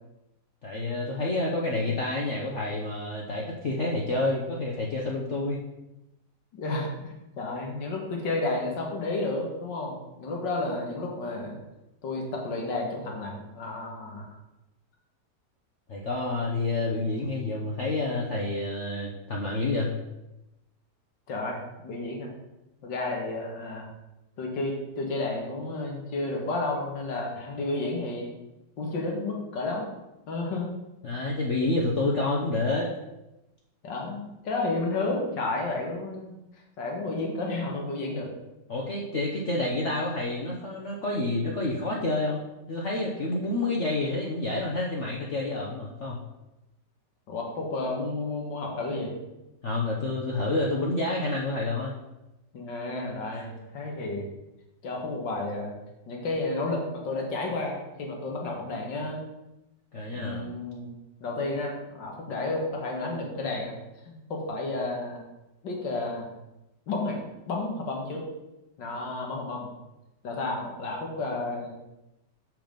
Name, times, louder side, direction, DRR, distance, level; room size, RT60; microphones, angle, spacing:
voice 1, 0.6-5.6 15.9-19.9 31.0-32.9 38.7-42.4 42.7-46.2 49.6-52.0 59.9-60.5, left 2 dB, 45° left, -3 dB, 1.2 m, -28 dB
voice 2, 6.5-11.6 12.0-14.4 21.3-21.6 21.8-22.3 22.8-23.9 24.4-28.3 28.8-29.9 30.3-30.7 33.8-36.3 36.8-38.3 47.3-49.1 52.5-54.3 54.8-55.7 56.1-59.2 60.1-60.9 61.2-63.8 64.1-65.2 65.6-66.3 66.9-67.2 67.5-68.2 68.8-69.7 70.2-71.7, left 2 dB, 85° left, 0 dB, 2.3 m, -31 dB
7.3 x 6.0 x 5.2 m, 0.96 s
omnidirectional pair, 1.9 m